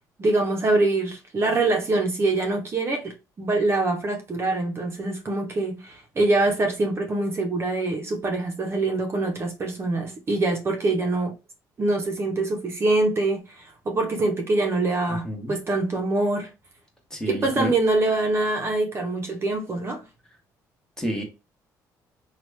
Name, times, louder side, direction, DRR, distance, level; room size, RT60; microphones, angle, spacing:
voice 1, 0.2-11.3 11.8-16.5 17.3-20.0, right 2 dB, 35° right, 0.7 m, -24 dB
voice 2, 17.1-17.7 21.0-21.2, equal, 10° left, 1.0 m, -29 dB
2.9 x 2.3 x 3.2 m
cardioid pair, 100°, 7 cm